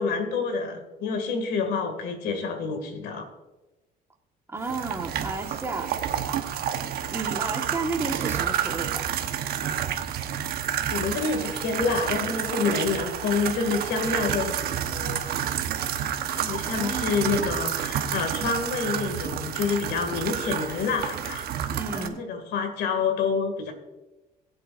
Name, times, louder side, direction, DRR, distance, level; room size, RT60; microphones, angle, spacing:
voice 1, 0.0-3.3 10.9-15.2 16.3-21.5 21.9-23.7, left 5 dB, 75° left, 6 dB, 2.3 m, -28 dB
voice 2, 4.5-5.9 7.1-9.0 16.6-17.5 21.7-22.2, right 3 dB, 15° right, 2 dB, 1.5 m, -32 dB
sound 1, 4.6-22.1, right 9 dB, 70° right, 1.1 m, -29 dB
21.0 x 7.8 x 2.6 m, 1.1 s
cardioid pair, 110°, 17 cm